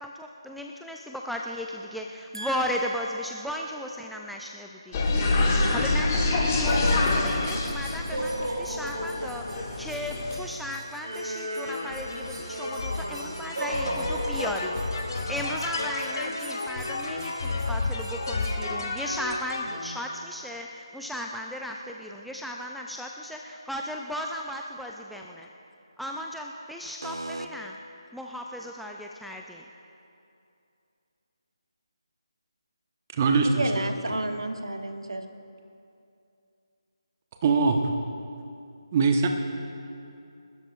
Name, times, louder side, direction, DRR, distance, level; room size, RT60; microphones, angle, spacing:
voice 1, 0.0-5.0 5.7-25.5 26.0-27.8 28.1-29.6, equal, ahead, -1 dB, 0.4 m, -36 dB
voice 2, 2.3-3.0 27.0-27.5 33.4-35.2, right 2 dB, 75° right, 6 dB, 1.1 m, -31 dB
sound 1, 4.9-10.4, left 2 dB, 25° left, 2.2 m, -26 dB
sound 2, 6.7-18.6, right 1 dB, 55° right, 3.0 m, -37 dB
sound 3, 11.7-19.9, left 3 dB, 55° left, 2.3 m, -32 dB
voice 3, 33.2-33.6 37.4-37.8 38.9-39.3, right 4 dB, 30° right, 4 dB, 1.1 m, -21 dB
28.5 x 13.0 x 2.5 m, 2.6 s
figure-of-eight pair, 155°, 3 cm